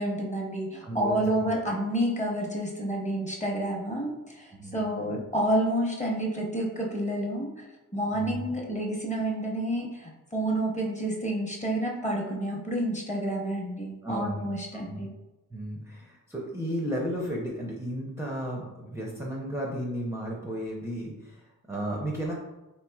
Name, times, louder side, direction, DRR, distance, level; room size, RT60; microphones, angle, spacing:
voice 1, 0.0-7.5 7.9-15.1, right 1 dB, 20° left, 0 dB, 0.8 m, -29 dB
voice 2, 0.8-1.5 4.5-5.2 8.1-8.4 14.0-14.5 14.7-15.1 15.5-22.3, equal, 10° right, -3 dB, 0.5 m, -34 dB
3.4 x 3.0 x 2.3 m, 1.0 s
cardioid pair, 65°, 34 cm